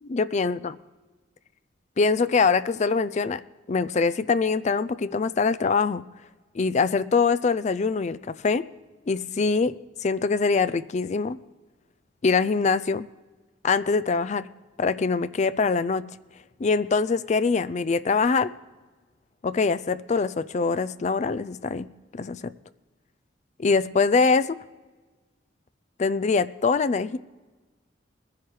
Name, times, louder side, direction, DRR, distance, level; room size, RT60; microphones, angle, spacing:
voice 1, 0.0-0.7 2.0-3.4 3.7-6.0 6.5-8.6 9.1-11.4 12.2-13.0 13.6-14.5 14.8-16.1 16.6-18.5 19.4-22.5 23.6-24.6 26.0-27.2, left 4 dB, 35° left, 15 dB, 0.4 m, -23 dB
21.0 x 10.5 x 3.2 m, 1.3 s
head